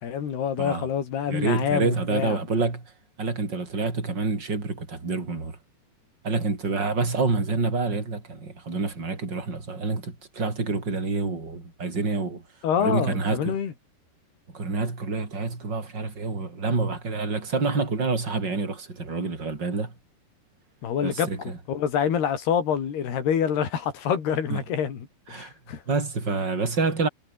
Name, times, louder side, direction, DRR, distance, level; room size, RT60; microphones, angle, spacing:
voice 1, 0.0-2.4 12.6-13.7 20.8-25.8, left 8 dB, 75° left, 5.5 m, -27 dB
voice 2, 1.3-2.8 3.2-5.6 6.2-12.4 12.8-13.6 14.5-19.9 21.0-21.6 24.5-24.6 25.3-25.5 25.9-27.1, right 3 dB, 25° right, 5.3 m, -27 dB
omnidirectional pair, 4.7 m